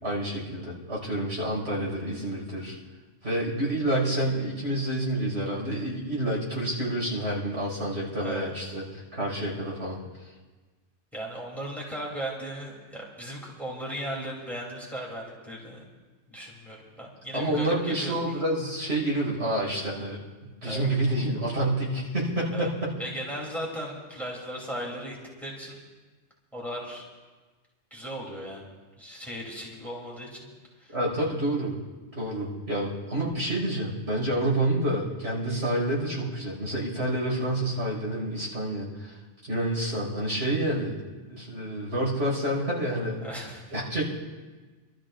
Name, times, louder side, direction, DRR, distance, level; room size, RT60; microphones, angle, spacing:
voice 1, 0.0-2.8 3.2-10.0 17.3-20.2 20.6-22.9 30.9-31.7 32.1-39.2 39.5-43.2 43.7-44.1, right 1 dB, 70° right, -5 dB, 5.7 m, -28 dB
voice 2, 8.2-8.8 11.1-15.8 16.3-18.1 20.6-20.9 22.5-22.7 23.0-25.8 26.5-27.0 27.9-28.7 29.0-30.5 30.8-30.9 43.2-43.6, right 1 dB, ahead, -4 dB, 3.0 m, -37 dB
29.0 x 13.5 x 2.5 m, 1.3 s
omnidirectional pair, 1.2 m